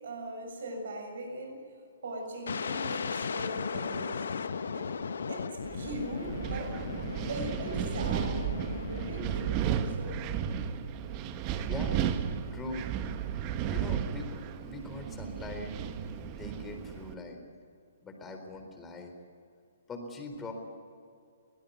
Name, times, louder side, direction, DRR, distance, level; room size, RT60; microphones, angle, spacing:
voice 1, 0.0-1.6 2.0-4.3 4.7-4.9 5.3-5.5 5.7-6.7 7.3-9.6 9.9-10.2, right 1 dB, 60° right, 3 dB, 7.2 m, -40 dB
sound 1, 2.5-10.3, left 5 dB, 65° left, 1.5 m, -37 dB
Wind, 5.6-17.1, right 9 dB, 30° right, 1.4 m, -34 dB
voice 2, 11.6-12.1 12.5-12.9 13.7-15.7 16.3-17.4 18.0-19.1 19.9-20.5, left 2 dB, 15° left, 4 dB, 4.1 m, -41 dB
23.0 x 19.0 x 9.5 m, 2.4 s
figure-of-eight pair, 130°, 0 cm